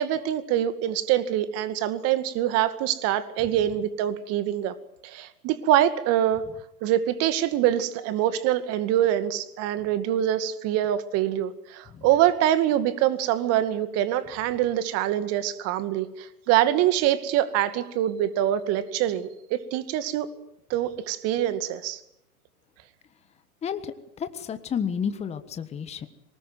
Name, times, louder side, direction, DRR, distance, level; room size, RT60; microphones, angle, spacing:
voice 1, 0.0-4.7 5.0-6.4 6.8-20.3 20.7-22.0, right 12 dB, 35° right, 12 dB, 2.2 m, -24 dB
voice 2, 23.6-26.1, left 7 dB, 15° left, 10 dB, 1.4 m, -31 dB
23.5 x 20.5 x 9.4 m, 0.80 s
hypercardioid pair, 125°, 45 cm